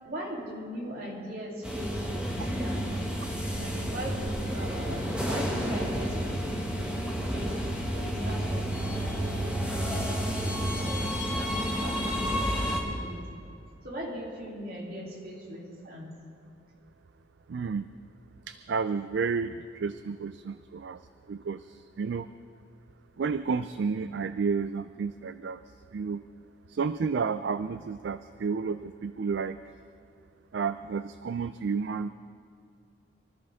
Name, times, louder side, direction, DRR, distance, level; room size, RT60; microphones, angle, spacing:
voice 1, 0.0-3.0 3.6-7.6 7.9-13.4 13.8-16.1, equal, 50° right, -3 dB, 3.3 m, -40 dB
sound 1, 1.6-12.8, equal, 5° right, 1.9 m, -30 dB
voice 2, 17.5-17.9 18.5-21.0 21.3-21.6 22.0-22.3 23.2-25.6 25.9-26.2 26.7-29.6 30.5-32.1, right 5 dB, 70° right, 12 dB, 0.4 m, -31 dB
24.5 x 13.5 x 3.6 m, 2.3 s
head